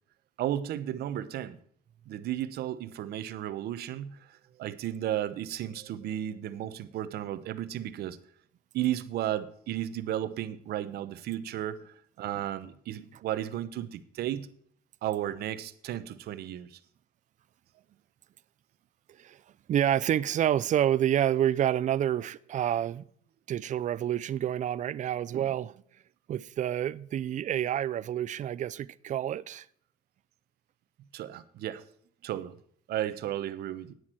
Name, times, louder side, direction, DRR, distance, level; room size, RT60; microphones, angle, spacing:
voice 1, 0.4-1.6 2.1-8.2 8.7-14.5 15.0-16.8 31.1-31.8 32.2-32.6 32.9-33.9, right 12 dB, 70° right, 1.0 m, -34 dB
voice 2, 19.7-23.0 23.5-25.7 26.3-29.7, right 11 dB, 45° right, 0.5 m, -28 dB
10.5 x 9.6 x 4.5 m
cardioid pair, 110°, 17 cm